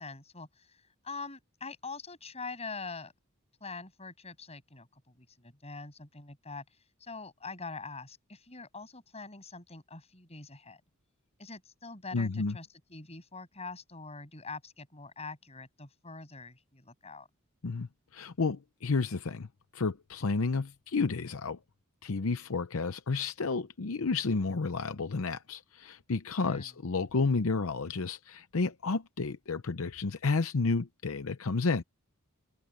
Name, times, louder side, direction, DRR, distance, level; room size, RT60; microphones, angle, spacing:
voice 1, 0.0-3.1 3.6-10.8 11.4-17.3 26.4-26.7, left 4 dB, 30° left, 6.9 m, -44 dB
voice 2, 12.1-12.6 17.6-19.5 19.7-21.6 22.0-31.8, left 4 dB, 70° left, 0.7 m, -31 dB
open air
head